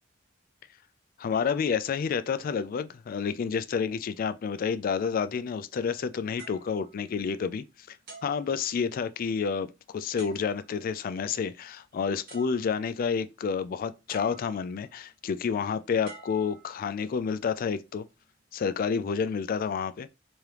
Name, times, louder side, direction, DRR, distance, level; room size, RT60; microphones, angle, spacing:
voice 1, 1.2-8.0 8.2-18.0 18.5-20.1, left 6 dB, 45° left, 0.3 m, -29 dB
sound 1, 6.4-7.6 8.1-9.2 10.2-10.9 11.9-12.0 12.3-13.1 14.1-14.9 16.0-17.2 17.9-18.1, right 3 dB, 55° right, 1.5 m, -50 dB
3.5 x 2.9 x 3.3 m
head